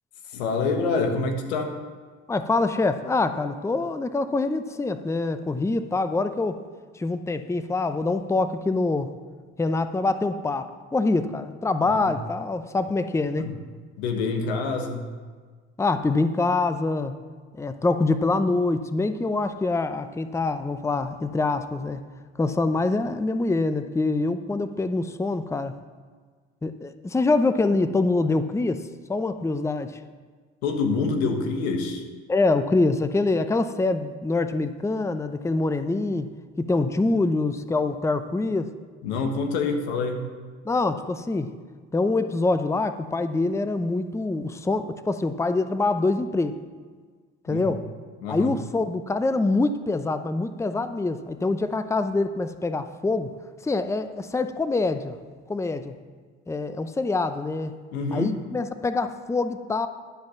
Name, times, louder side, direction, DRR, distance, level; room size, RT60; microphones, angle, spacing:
voice 1, 0.3-1.7 11.8-12.1 13.4-13.5 14.0-15.1 30.6-32.0 39.0-40.3 47.5-47.8 48.2-48.6 57.9-58.4, left 4 dB, 85° left, 5 dB, 1.4 m, -26 dB
voice 2, 2.3-6.6 7.0-9.1 9.6-13.5 15.8-17.2 17.6-22.0 22.4-25.8 26.6-28.8 29.1-30.0 32.3-36.3 36.6-38.7 40.6-41.5 41.9-46.5 47.5-47.9 48.3-53.3 53.6-55.2 55.5-55.9 56.5-57.7 58.1-59.9, left 3 dB, 10° left, 10 dB, 0.6 m, -25 dB
11.5 x 5.2 x 7.1 m, 1.5 s
hypercardioid pair, 65°, 31 cm